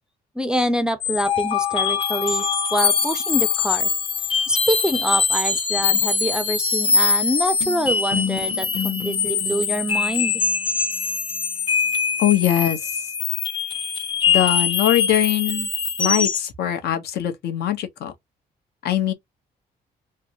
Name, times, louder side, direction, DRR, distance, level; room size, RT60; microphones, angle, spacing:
voice 1, 0.4-3.9 4.5-10.4, equal, 5° right, 0.4 m, -25 dB
sound 1, 1.0-16.5, left 6 dB, 30° left, 0.7 m, -23 dB
voice 2, 12.2-13.0 14.3-15.7 16.0-18.1 18.8-19.1, left 11 dB, 80° left, 0.8 m, -22 dB
3.3 x 2.0 x 2.7 m
cardioid pair, 130°, 17 cm